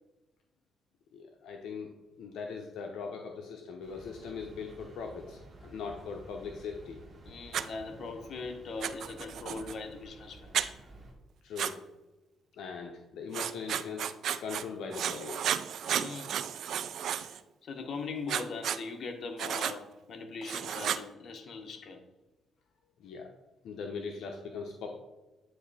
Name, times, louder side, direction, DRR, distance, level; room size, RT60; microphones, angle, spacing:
voice 1, 1.1-1.9 2.2-7.0 11.4-11.8 12.6-14.1 14.4-15.4 23.0-23.3 23.6-25.0, left 5 dB, 80° left, 2 dB, 0.7 m, -40 dB
sound 1, 3.8-11.1, right 2 dB, 35° right, 1.8 m, -53 dB
sound 2, 4.0-8.6, left 1 dB, 40° left, 2.3 m, -56 dB
voice 2, 7.2-10.7 15.8-16.3 17.0-17.1 17.6-22.0, left 4 dB, 55° left, 5 dB, 1.0 m, -40 dB
Writing, 7.5-7.7 8.8-9.7 10.5-10.7 11.6-11.7 13.3-14.6 14.9-17.4 18.3-18.8 19.4-19.8 20.4-21.0, right 9 dB, 70° right, 0.3 m, -33 dB
9.3 x 3.1 x 4.1 m, 1.1 s
cardioid pair, 90°, 0 cm